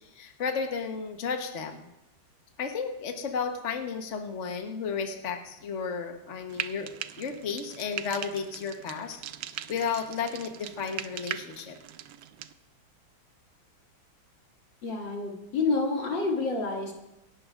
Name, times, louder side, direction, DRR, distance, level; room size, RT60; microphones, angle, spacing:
voice 1, 0.0-1.8 2.6-6.9 7.2-9.2 9.5-11.8, left 5 dB, 45° left, 4 dB, 1.2 m, -33 dB
Frying (food), 6.5-12.5, right 11 dB, 75° right, 1.3 m, -40 dB
voice 2, 14.8-16.9, left 3 dB, 65° left, -1 dB, 2.9 m, -28 dB
26.5 x 11.5 x 2.5 m, 0.89 s
omnidirectional pair, 2.2 m